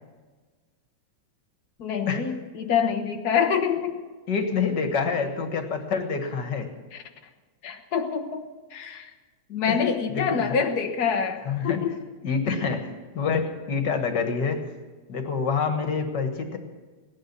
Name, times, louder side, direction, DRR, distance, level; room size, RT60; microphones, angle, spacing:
voice 1, 1.8-4.0 6.9-7.0 7.6-8.4 8.7-9.1 9.5-12.0, left 7 dB, 90° left, 4 dB, 0.8 m, -26 dB
voice 2, 4.3-6.7 9.7-9.8 10.1-10.5 11.5-11.8 12.2-12.9 13.1-14.6 15.1-16.6, left 5 dB, 45° left, 6 dB, 1.7 m, -27 dB
18.0 x 11.5 x 6.9 m, 1.4 s
omnidirectional pair, 3.5 m